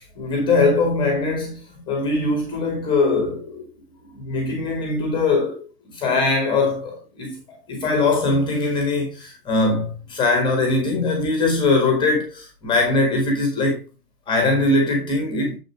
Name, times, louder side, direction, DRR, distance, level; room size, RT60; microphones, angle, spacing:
voice 1, 0.0-3.7 4.1-5.6 5.9-13.8 14.3-15.6, left 3 dB, 10° left, 1.5 m, -21 dB
7.5 x 6.6 x 3.4 m
figure-of-eight pair, 140°, 47 cm